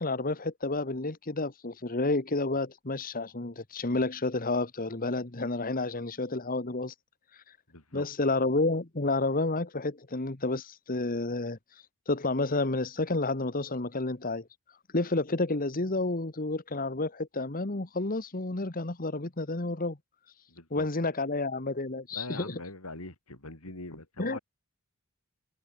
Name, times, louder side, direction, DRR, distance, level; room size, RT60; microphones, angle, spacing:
voice 1, 0.0-6.9 7.3-7.6 7.9-20.0 20.7-22.6 24.2-24.4, left 2 dB, 40° left, 1.5 m, -30 dB
voice 2, 7.7-8.1 20.5-20.9 22.1-24.4, left 2 dB, 85° left, 6.1 m, -42 dB
head